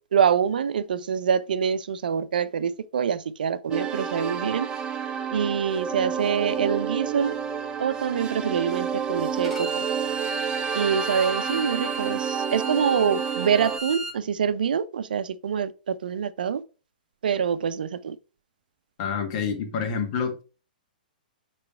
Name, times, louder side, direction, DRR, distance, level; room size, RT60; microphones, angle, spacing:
voice 1, 0.1-4.7 5.3-7.4 7.8-9.7 10.7-16.6 17.2-18.2, right 7 dB, 75° right, 0.5 m, -25 dB
sound 1, 3.7-13.8, right 7 dB, 20° right, 0.8 m, -30 dB
Bowed string instrument, 9.4-14.2, right 3 dB, ahead, 2.4 m, -34 dB
voice 2, 19.0-20.4, left 6 dB, 45° left, 1.5 m, -28 dB
6.7 x 3.2 x 4.4 m
hypercardioid pair, 120°, 5 cm